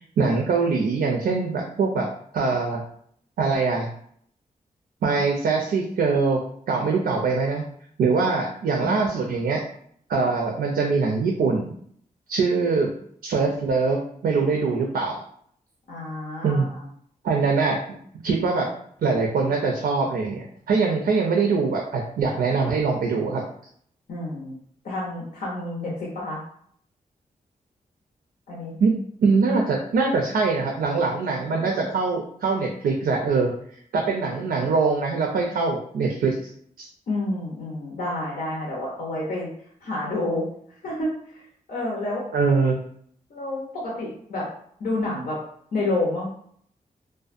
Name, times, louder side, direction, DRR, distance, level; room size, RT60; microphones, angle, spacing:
voice 1, 0.2-2.1 2.3-2.8 3.4-3.9 5.0-6.4 6.7-7.6 8.0-9.6 10.1-11.7 12.3-12.9 13.2-15.2 16.4-16.7 17.2-18.0 18.2-18.7 19.0-23.4 28.8-33.5 33.9-36.4 36.8-36.9 42.3-42.8, right 4 dB, 80° right, 1 dB, 0.4 m, -23 dB
voice 2, 15.9-16.8 24.1-24.6 24.8-26.4 28.5-28.7 31.5-31.9 37.1-39.5 39.8-40.4 40.8-41.4 41.7-42.2 43.3-44.5 44.8-45.4 45.7-46.3, left 2 dB, 75° left, -4 dB, 0.6 m, -29 dB
2.5 x 2.2 x 2.5 m, 0.64 s
cardioid pair, 60°, 15 cm